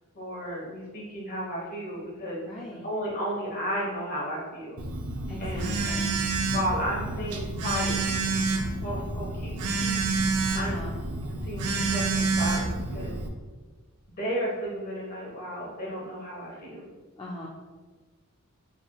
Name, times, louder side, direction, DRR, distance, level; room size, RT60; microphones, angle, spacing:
voice 1, 0.1-2.4 2.8-4.8 5.4-5.8 6.5-8.2 8.8-9.5 9.8-10.0 10.5-10.9 11.4-13.2 14.2-16.9, equal, 40° left, -4 dB, 1.2 m, -33 dB
voice 2, 2.5-2.8 5.3-6.2 10.5-10.9 17.2-17.5, left 1 dB, 20° left, -4 dB, 0.4 m, -40 dB
Telephone, 4.8-13.3, right 3 dB, 85° right, 0.5 m, -28 dB
4.3 x 3.4 x 2.3 m, 1.4 s
head